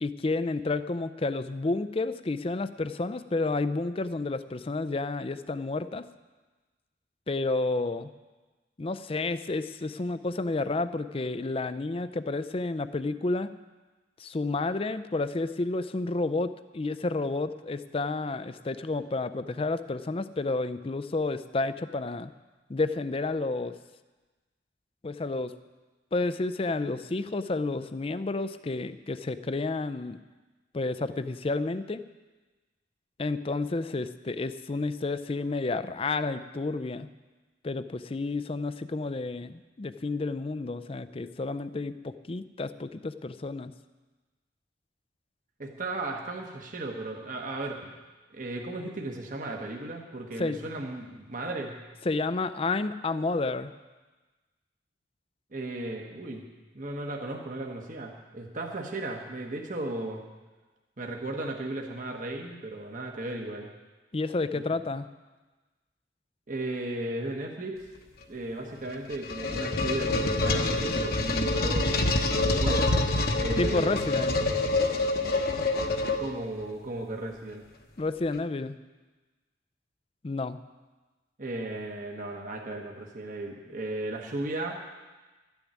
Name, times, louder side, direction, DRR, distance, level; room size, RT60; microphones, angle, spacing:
voice 1, 0.0-6.0 7.3-8.1 8.8-13.5 14.2-22.3 22.7-23.8 25.0-25.5 26.1-30.2 30.7-32.0 33.2-37.1 37.6-43.7 50.4-50.6 52.0-53.7 64.1-65.1 73.6-74.4 78.0-78.7 80.2-80.6, left 3 dB, 30° left, 13 dB, 0.5 m, -30 dB
voice 2, 45.6-47.9 48.3-51.8 55.5-56.4 56.7-60.2 61.0-63.7 64.5-64.6 66.5-67.8 68.3-71.9 72.4-72.9 73.4-74.0 76.2-77.7 81.4-84.8, right 2 dB, 45° right, 1 dB, 1.2 m, -35 dB
sound 1, 68.9-76.6, left 2 dB, 55° left, 1.0 m, -26 dB
13.0 x 7.1 x 9.4 m, 1.2 s
head